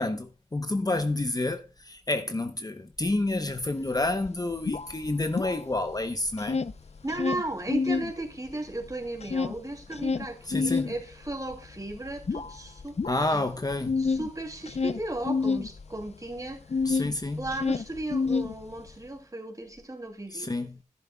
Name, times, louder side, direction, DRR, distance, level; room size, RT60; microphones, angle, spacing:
voice 1, 0.0-6.6 10.5-10.9 13.1-14.1 16.8-17.5 20.3-20.8, left 2 dB, 30° left, 0.8 m, -29 dB
sound 1, 3.6-3.7 4.0-6.0 6.3-8.1 8.5-17.1 17.4-19.0, left 4 dB, 55° left, 0.6 m, -29 dB
voice 2, 7.0-13.0 13.3-13.5 14.0-16.8 17.4-20.5, right 2 dB, 25° right, 2.7 m, -35 dB
12.5 x 11.0 x 2.2 m
wide cardioid pair, 55°, 13 cm